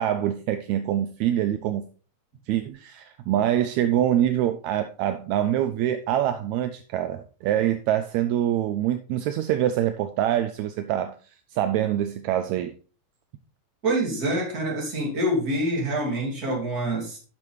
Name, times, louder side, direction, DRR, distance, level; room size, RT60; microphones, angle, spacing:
voice 1, 0.0-1.8 2.5-11.2 11.5-12.7, right 11 dB, 80° right, 1.7 m, -25 dB
voice 2, 13.8-17.2, right 1 dB, 30° right, 2.8 m, -26 dB
10.5 x 6.1 x 3.2 m
omnidirectional pair, 3.8 m